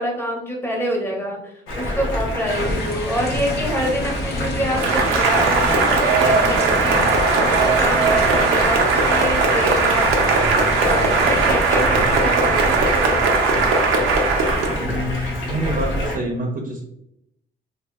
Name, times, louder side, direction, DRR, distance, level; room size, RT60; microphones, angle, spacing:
voice 1, 0.0-1.4 1.8-10.4 10.8-13.2 15.5-15.8, equal, 10° left, 0 dB, 0.9 m, -27 dB
Stream, 1.7-16.2, left 1 dB, 85° left, 0.9 m, -27 dB
sound 1, 2.4-11.6, left 2 dB, 55° left, 0.7 m, -31 dB
Cheering / Applause, 4.8-14.8, right 4 dB, 90° right, 0.6 m, -18 dB
voice 2, 14.8-16.8, right 1 dB, 45° right, 1 dB, 0.6 m, -26 dB
3.1 x 2.7 x 2.2 m, 0.79 s
cardioid pair, 90°, 20 cm